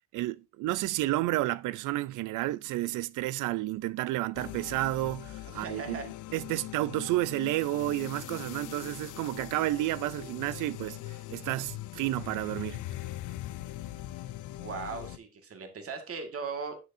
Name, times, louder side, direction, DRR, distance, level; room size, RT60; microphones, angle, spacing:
voice 1, 0.1-6.0 6.3-12.8, right 16 dB, 90° right, 0.5 m, -31 dB
sound 1, 4.3-15.2, left 15 dB, 80° left, 0.6 m, -41 dB
voice 2, 5.5-6.1 14.6-16.7, right 5 dB, 50° right, 1.9 m, -38 dB
9.5 x 6.9 x 2.7 m
cardioid pair, 90°, 30 cm